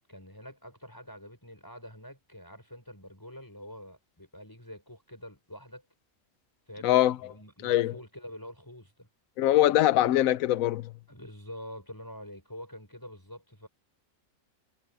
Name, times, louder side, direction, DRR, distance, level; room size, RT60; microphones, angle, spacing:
voice 1, 0.1-5.8 6.7-9.1 11.1-13.7, equal, 15° left, 6.1 m, -46 dB
voice 2, 6.8-7.2 7.6-7.9 9.4-10.9, left 13 dB, 85° left, 1.0 m, -23 dB
omnidirectional pair, 1.4 m